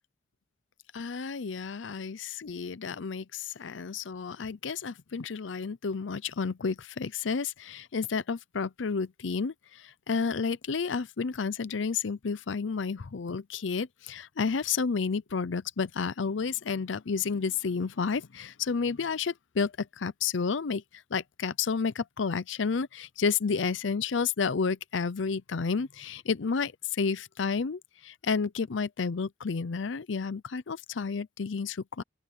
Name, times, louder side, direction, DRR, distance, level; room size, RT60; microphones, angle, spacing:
voice 1, 0.9-32.0, left 5 dB, 80° left, 0.6 m, -31 dB
open air
head